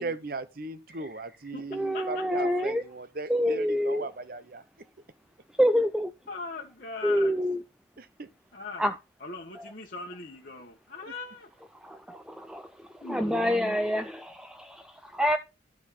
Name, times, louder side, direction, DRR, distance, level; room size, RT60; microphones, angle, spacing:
voice 1, 0.0-4.6 8.0-8.3, right 3 dB, 50° right, 0.8 m, -37 dB
voice 2, 1.7-2.8 3.3-4.1 5.6-6.1 7.0-7.6 8.8-9.0 9.6-9.7 11.8-12.7 13.0-15.4, equal, 5° right, 0.4 m, -27 dB
voice 3, 6.3-7.3 8.5-8.8 9.2-11.5 13.0-13.8, left 3 dB, 45° left, 1.4 m, -40 dB
12.5 x 4.5 x 4.2 m
head